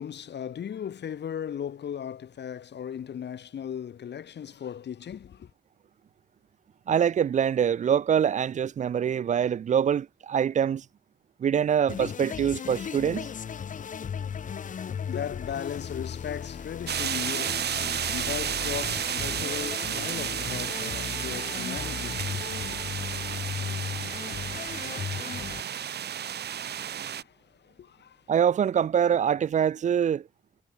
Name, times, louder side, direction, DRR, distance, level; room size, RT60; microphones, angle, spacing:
voice 1, 0.0-5.5 14.6-22.4 26.8-26.9 27.1-28.2, left 8 dB, 65° left, 3.6 m, -37 dB
voice 2, 6.9-10.8 11.4-13.3 28.3-30.3, right 8 dB, 40° right, 0.4 m, -24 dB
sound 1, 11.9-25.6, left 7 dB, 40° left, 0.8 m, -36 dB
sound 2, 16.9-27.2, right 9 dB, 60° right, 1.0 m, -32 dB
cardioid pair, 115°, 19 cm